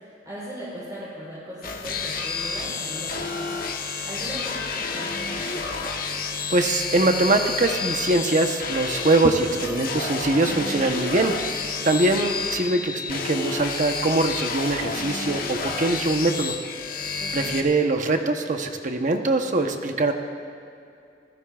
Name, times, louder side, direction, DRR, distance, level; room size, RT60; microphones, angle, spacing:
voice 1, 0.2-3.6 4.0-5.8 17.2-17.5, equal, 20° right, -9 dB, 4.3 m, -38 dB
sound 1, 1.6-17.6, left 4 dB, 55° left, 1.2 m, -30 dB
voice 2, 6.5-11.4 11.8-16.5 17.3-20.1, right 2 dB, 45° right, 5 dB, 1.0 m, -22 dB
25.5 x 16.0 x 2.5 m, 2.5 s
head